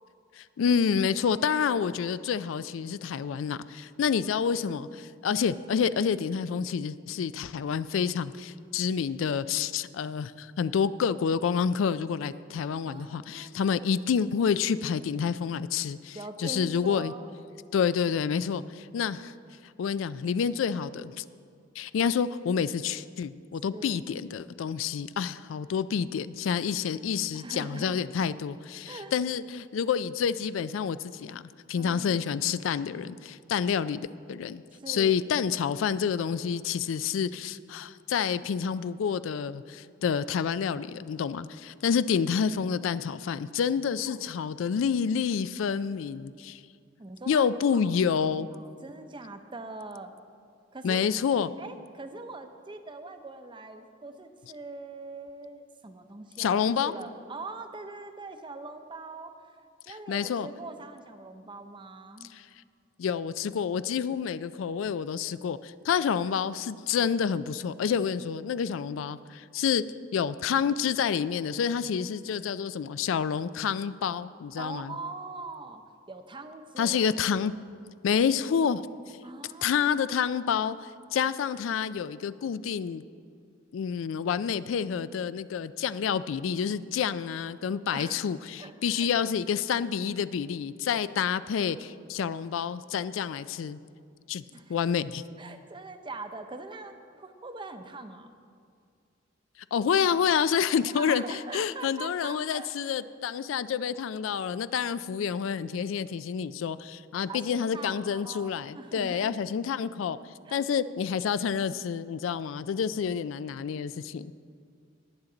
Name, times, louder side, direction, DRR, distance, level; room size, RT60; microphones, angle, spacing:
voice 1, 0.3-17.1 17.7-19.3 19.8-21.2 21.8-31.4 31.7-46.6 47.3-48.5 50.8-51.5 56.4-56.9 60.1-60.5 62.3-62.5 63.0-69.8 70.1-75.0 76.8-77.5 78.0-78.8 79.6-83.0 83.7-93.8 94.3-94.4 94.7-95.2 99.7-110.2 110.5-114.3, left 7 dB, 80° left, 15 dB, 0.3 m, -28 dB
voice 2, 12.9-13.6 16.1-17.3 23.6-23.9 27.3-28.0 28.9-29.1 31.7-32.2 34.8-35.2 44.1-44.3 47.0-47.4 47.7-47.9 48.4-50.1 50.7-51.1 51.6-59.3 59.9-62.3 74.6-77.0 79.2-80.0 87.9-88.2 88.6-89.1 94.5-94.8 95.4-98.3 100.9-103.0 107.2-109.4 110.5-110.7, right 3 dB, 25° right, 8 dB, 0.6 m, -42 dB
19.5 x 7.2 x 3.9 m, 2.2 s
head